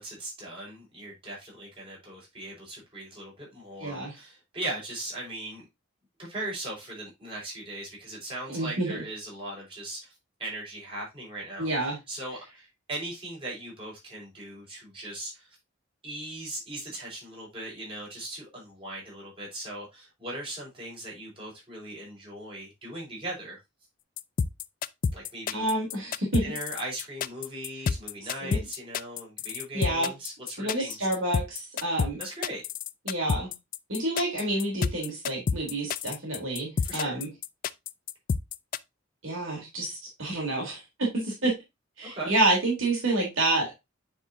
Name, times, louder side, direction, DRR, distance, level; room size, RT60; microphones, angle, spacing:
voice 1, 0.0-5.6 6.2-10.1 10.4-11.7 12.1-15.5 16.0-23.6 25.1-25.7 26.4-30.9 32.2-32.6 36.8-37.2 42.0-42.3, right 1 dB, 25° right, -4 dB, 4.7 m, -39 dB
voice 2, 3.8-4.1 8.5-9.0 11.6-12.0 25.5-26.4 28.4-28.6 29.7-30.1 30.6-32.2 33.0-33.5 33.9-37.3 39.2-41.6 42.0-43.7, right 2 dB, 70° right, -1 dB, 3.1 m, -28 dB
sound 1, 24.2-38.8, left 6 dB, 45° left, 0.3 m, -29 dB
9.5 x 4.7 x 2.7 m, 0.21 s
head